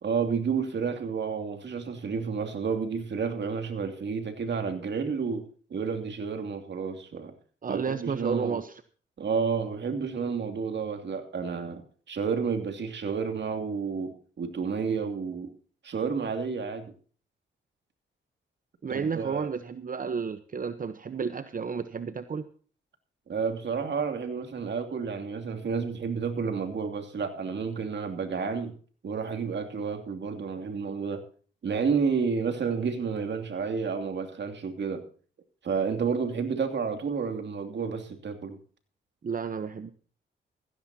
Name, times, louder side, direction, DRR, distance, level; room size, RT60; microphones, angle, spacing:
voice 1, 0.0-7.3 7.7-8.6 9.2-15.5 15.8-16.9 18.9-19.5 23.3-28.7 29.0-31.2 31.6-35.1 35.6-38.6, right 5 dB, 60° right, 5 dB, 2.8 m, -30 dB
voice 2, 7.6-8.8 18.8-22.4 39.2-39.9, right 6 dB, 45° right, 12 dB, 1.0 m, -32 dB
16.0 x 15.5 x 2.8 m, 0.42 s
cardioid pair, 65°, 20 cm